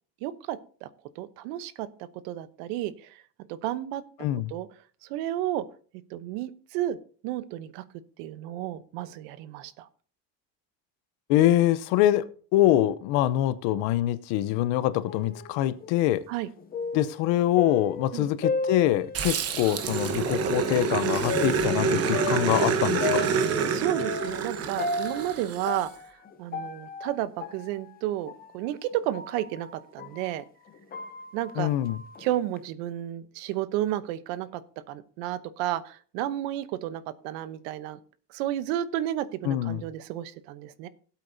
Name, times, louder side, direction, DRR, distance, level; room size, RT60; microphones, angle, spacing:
voice 1, 0.2-0.9 1.2-1.9 2.2-3.1 3.5-4.0 4.5-4.7 5.0-5.6 6.1-7.0 7.2-7.8 8.2-9.9 16.3-16.5 18.1-18.3 23.7-25.9 26.4-30.4 31.3-31.7 32.2-34.6 34.9-38.0 38.3-40.9, right 13 dB, 85° right, 1.0 m, -32 dB
voice 2, 4.2-4.5 11.3-16.2 16.9-23.2 31.6-32.0 39.4-39.8, left 13 dB, 65° left, 0.8 m, -24 dB
sound 1, 15.1-19.7 20.2-20.3 21.2-30.3 30.7-32.6, left 4 dB, 20° left, 0.7 m, -35 dB
Growling, 19.1-25.8, right 6 dB, 30° right, 1.0 m, -27 dB
17.0 x 8.3 x 2.7 m
cardioid pair, 165°, 46 cm